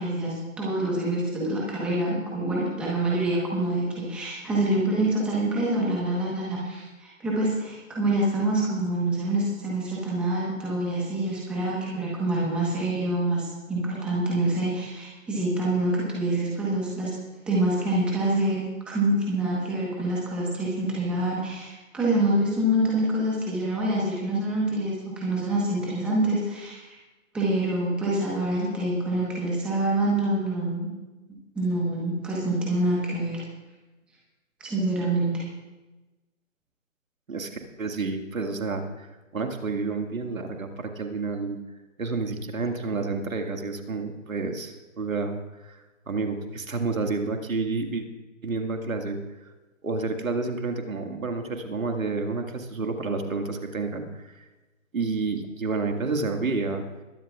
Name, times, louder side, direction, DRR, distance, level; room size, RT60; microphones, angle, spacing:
voice 1, 0.0-17.1 17.4-27.0 27.3-30.9 31.5-33.4 34.6-35.4, right 1 dB, 5° right, -5 dB, 1.2 m, -26 dB
voice 2, 37.3-41.6 42.0-48.1 48.4-49.5 49.8-54.4 54.9-56.8, right 3 dB, 85° right, 4 dB, 2.0 m, -30 dB
21.5 x 12.0 x 2.4 m, 1.1 s
hypercardioid pair, 160°, 40 cm